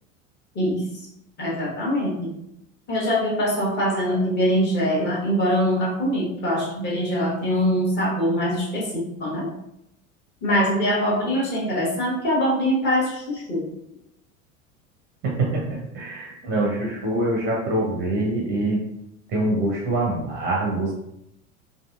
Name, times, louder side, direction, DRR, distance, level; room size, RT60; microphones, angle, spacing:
voice 1, 0.5-0.9 1.4-2.3 2.9-9.5 10.4-13.7, equal, 25° left, -5 dB, 1.0 m, -23 dB
voice 2, 15.2-18.8 19.3-20.9, right 2 dB, 25° right, -3 dB, 0.5 m, -24 dB
2.6 x 2.5 x 2.3 m, 0.82 s
figure-of-eight pair, 80°, 40 cm